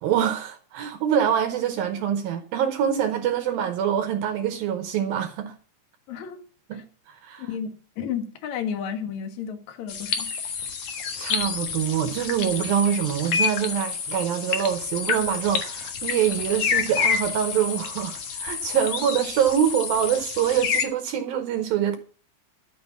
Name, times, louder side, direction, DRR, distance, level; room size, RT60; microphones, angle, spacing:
voice 1, 0.0-5.5 6.7-7.5 11.2-22.0, right 9 dB, 75° right, 2.2 m, -25 dB
voice 2, 6.1-6.4 6.7-6.8 7.4-10.3, left 7 dB, 60° left, 2.1 m, -32 dB
sound 1, 9.9-20.8, left 6 dB, 85° left, 1.4 m, -29 dB
13.0 x 6.5 x 7.2 m
omnidirectional pair, 5.3 m